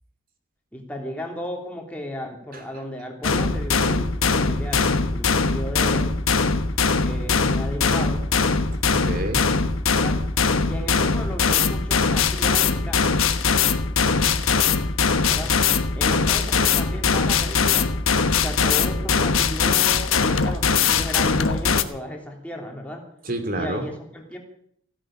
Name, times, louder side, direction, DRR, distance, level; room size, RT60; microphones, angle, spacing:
voice 1, 0.7-6.1 7.0-8.3 9.9-10.1 10.6-13.1 15.2-15.5 15.9-17.9 18.4-23.0 23.5-24.4, equal, 5° left, 0 dB, 3.1 m, -34 dB
voice 2, 2.5-2.8 3.8-4.0 8.9-9.4 14.1-14.6 23.2-23.9, right 1 dB, 45° right, 7 dB, 2.6 m, -30 dB
sound 1, 3.2-21.8, left 5 dB, 85° left, 1.1 m, -21 dB
16.0 x 10.0 x 8.8 m, 0.67 s
head